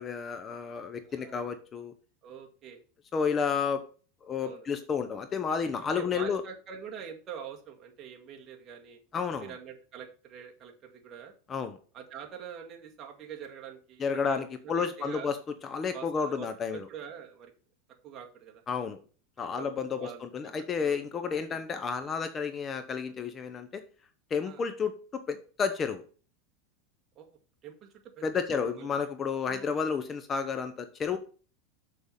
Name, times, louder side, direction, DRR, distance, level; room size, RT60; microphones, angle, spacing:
voice 1, 0.0-1.9 3.1-3.8 4.2-6.4 9.1-9.5 11.5-11.8 14.0-15.4 15.6-16.9 18.7-19.0 19.4-23.8 24.3-26.0 28.2-31.2, left 6 dB, 25° left, 10 dB, 0.8 m, -31 dB
voice 2, 1.0-1.4 2.2-2.8 4.4-4.7 5.9-9.0 9.4-11.3 11.9-15.3 15.9-17.5 18.0-18.6 19.4-19.7 20.0-21.0 21.5-21.6 24.4-24.7 27.2-27.9 28.2-28.3 28.5-29.0 29.4-29.8, right 8 dB, 30° right, 1 dB, 2.0 m, -45 dB
6.7 x 6.4 x 5.5 m, 0.39 s
supercardioid pair, 135°, 0 cm